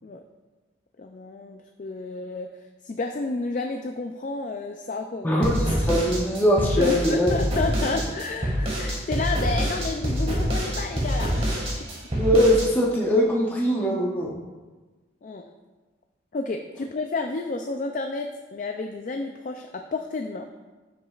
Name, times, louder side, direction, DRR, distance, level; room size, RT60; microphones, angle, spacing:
voice 1, 1.0-2.5 2.8-5.4 6.8-11.6 15.2-15.4 16.3-18.3 18.5-20.5, left 3 dB, 40° left, 4 dB, 0.4 m, -30 dB
voice 2, 5.2-7.3 12.1-14.3, equal, 10° left, -4 dB, 0.7 m, -21 dB
sound 1, 5.4-12.7, equal, 30° right, 1.7 m, -26 dB
12.0 x 6.1 x 2.4 m, 1.3 s
head